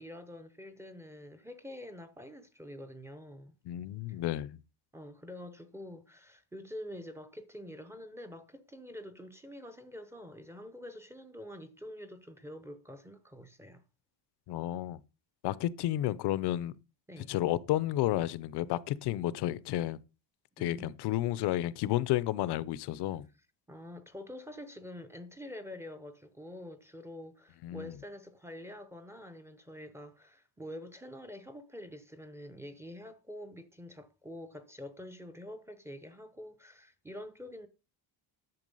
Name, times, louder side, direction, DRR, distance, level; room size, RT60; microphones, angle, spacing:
voice 1, 0.0-3.6 4.1-4.2 4.9-13.8 17.1-17.4 20.6-20.9 23.7-37.7, left 1 dB, 5° right, 0.7 m, -46 dB
voice 2, 3.7-4.6 14.5-15.0 15.4-16.7 17.3-20.0 20.6-23.3 27.6-27.9, left 14 dB, 60° left, 0.7 m, -31 dB
10.5 x 7.1 x 5.4 m
cardioid pair, 170°, 45 cm